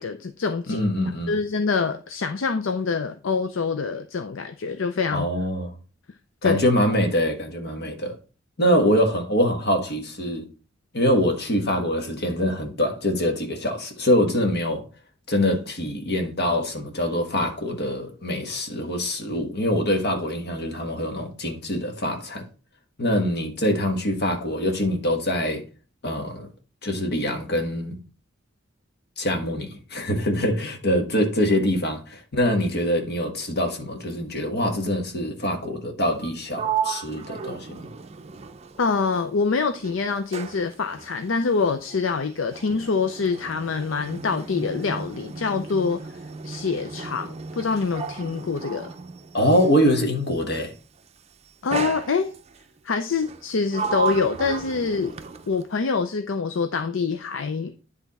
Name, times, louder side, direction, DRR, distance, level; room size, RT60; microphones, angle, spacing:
voice 1, 0.0-0.8 1.3-5.3 6.4-6.6 38.8-46.0 46.4-48.9 51.6-52.3 52.8-55.1 55.5-57.7, left 4 dB, 70° left, 0.5 m, -25 dB
voice 2, 0.7-1.3 5.1-5.8 6.4-8.2 8.6-10.5 10.9-14.8 15.3-22.4 23.0-25.6 26.0-26.5 26.8-27.9 29.2-37.8 49.3-50.7, equal, 55° left, 1.5 m, -24 dB
Sliding door, 36.1-39.4 39.7-49.9 50.8-51.1 51.7-52.6 53.2-55.7, right 5 dB, 30° right, 0.5 m, -34 dB
10.0 x 3.5 x 4.1 m
head